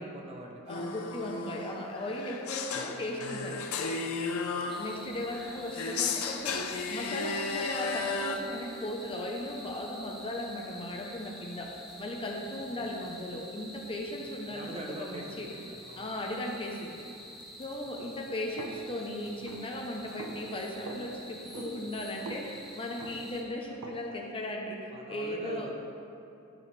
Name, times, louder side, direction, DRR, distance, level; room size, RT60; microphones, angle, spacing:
voice 1, 0.0-0.9 4.5-4.8 12.8-12.9 14.5-16.1 24.9-25.7, right 1 dB, 25° right, 1 dB, 0.7 m, -44 dB
voice 2, 0.6-3.9 4.7-11.7 12.0-15.5 16.0-17.0 17.6-25.7, left 1 dB, 25° left, 1 dB, 0.6 m, -37 dB
sound 1, 0.7-8.4, left 4 dB, 70° left, 0.5 m, -34 dB
sound 2, 4.7-23.4, equal, ahead, 1.0 m, -48 dB
sound 3, 18.6-24.3, right 2 dB, 75° right, 0.6 m, -45 dB
12.5 x 4.7 x 3.1 m, 2.7 s
head